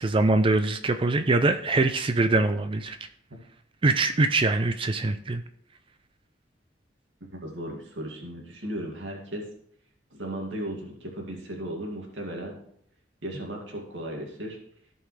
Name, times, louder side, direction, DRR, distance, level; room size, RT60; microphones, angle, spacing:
voice 1, 0.0-3.0 3.8-5.4, right 2 dB, 30° right, 9 dB, 0.4 m, -23 dB
voice 2, 7.3-9.5 10.1-12.6 13.2-14.6, right 1 dB, 85° right, 0 dB, 2.3 m, -36 dB
16.0 x 5.4 x 3.3 m, 0.66 s
head